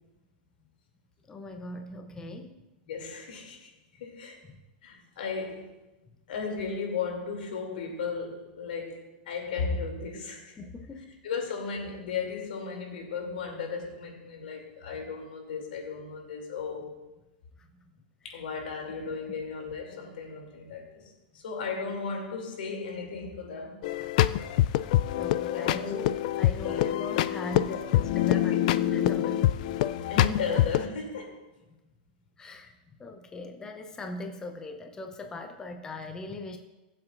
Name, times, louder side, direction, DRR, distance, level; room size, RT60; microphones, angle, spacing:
voice 1, 1.3-2.6 4.5-4.6 10.6-11.1 17.6-17.7 18.3-18.4 19.2-19.3 25.1-29.5 32.4-32.7 33.0-36.6, left 2 dB, 15° left, 0.7 m, -40 dB
voice 2, 2.9-3.7 4.0-4.4 4.8-5.7 6.3-10.6 11.2-17.0 18.2-21.0 21.3-23.8 25.5-26.1 26.6-26.9 27.7-27.8 28.3-28.6 30.1-31.4, left 5 dB, 80° left, 2.9 m, -35 dB
sound 1, 23.8-30.8, left 13 dB, 55° left, 0.4 m, -26 dB
20.0 x 7.7 x 2.6 m
supercardioid pair, 145°, 5 cm